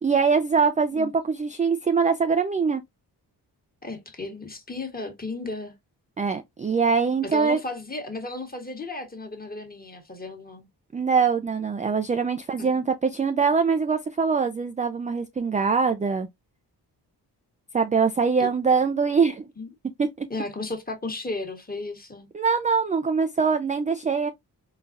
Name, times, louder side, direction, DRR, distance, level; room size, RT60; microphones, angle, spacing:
voice 1, 0.0-2.8 6.2-7.6 10.9-16.3 17.7-19.4 20.0-20.3 22.3-24.3, right 5 dB, 20° right, 0.3 m, -23 dB
voice 2, 3.8-5.8 7.2-10.7 12.6-12.8 18.4-18.5 19.6-19.7 20.3-22.3, left 2 dB, 20° left, 1.3 m, -34 dB
3.9 x 2.2 x 2.5 m
cardioid pair, 60°, 41 cm